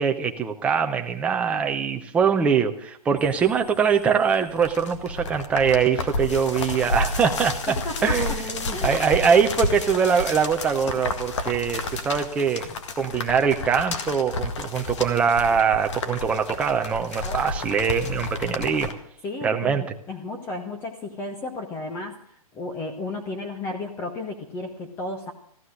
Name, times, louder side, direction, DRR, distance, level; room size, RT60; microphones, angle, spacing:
voice 1, 0.0-7.7 8.0-12.7 13.0-18.9 19.4-19.8, right 6 dB, 5° right, 5 dB, 0.6 m, -23 dB
sound 1, 3.2-18.9, left 3 dB, 50° left, 1.9 m, -31 dB
voice 2, 7.7-8.2 8.7-9.0 17.2-17.4 19.2-22.2 22.5-25.3, left 2 dB, 10° left, 3 dB, 1.0 m, -33 dB
14.5 x 12.5 x 6.4 m, 0.64 s
hypercardioid pair, 160°, 19 cm